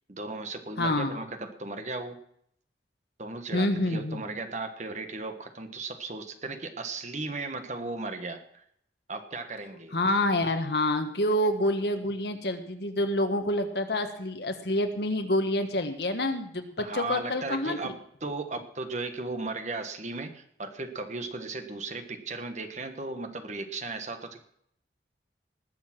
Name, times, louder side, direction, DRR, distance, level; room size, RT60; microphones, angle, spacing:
voice 1, 0.1-2.2 3.2-8.6 9.1-10.0 16.8-24.4, right 3 dB, 40° right, 7 dB, 1.4 m, -36 dB
voice 2, 0.8-1.2 3.5-4.2 9.9-17.9, left 1 dB, 65° left, 7 dB, 1.5 m, -27 dB
19.5 x 7.0 x 6.0 m, 0.69 s
head